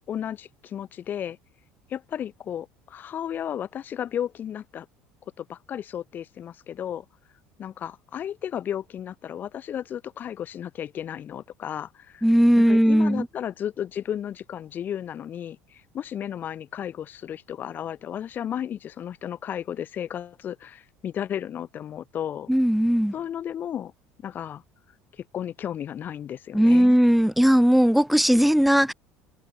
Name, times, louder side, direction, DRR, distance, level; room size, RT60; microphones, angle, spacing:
voice 1, 0.1-1.4 1.9-4.9 5.4-7.0 7.6-12.3 12.5-22.5 23.1-23.9 24.2-24.6 25.1-27.0, left 9 dB, 40° left, 0.6 m, -34 dB
voice 2, 12.2-13.3 22.5-23.1 26.5-28.9, equal, ahead, 0.4 m, -18 dB
supercardioid pair, 95°, 5 cm